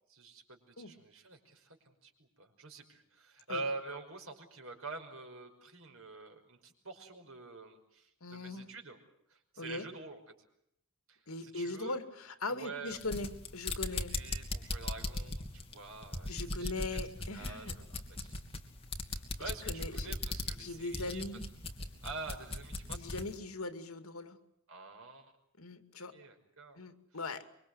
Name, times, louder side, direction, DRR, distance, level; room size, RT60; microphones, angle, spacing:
voice 1, 0.1-9.0 9.3-10.2 11.1-12.0 12.5-13.0 13.9-16.7 17.3-18.4 19.1-21.4 22.0-23.2 24.7-25.3 26.1-26.8, right 3 dB, 70° right, 5 dB, 5.5 m, -46 dB
voice 2, 8.2-8.6 9.6-9.9 11.3-14.2 16.3-17.8 19.7-20.2 20.6-21.5 22.9-24.4 25.6-26.1 26.8-27.5, left 2 dB, 80° left, 9 dB, 2.4 m, -40 dB
sound 1, 12.9-23.3, left 2 dB, 25° left, 2.8 m, -39 dB
25.5 x 23.5 x 8.0 m, 0.75 s
head